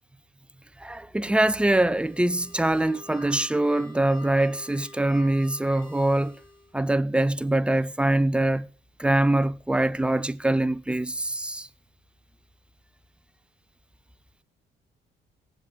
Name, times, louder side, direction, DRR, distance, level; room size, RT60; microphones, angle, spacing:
voice 1, 0.8-6.4 6.7-8.7 9.0-11.7, right 1 dB, 5° right, 0.5 m, -23 dB
sound 1, 1.9-6.7, left 1 dB, 85° left, 2.6 m, -47 dB
18.5 x 7.6 x 4.0 m
cardioid pair, 90°, 20 cm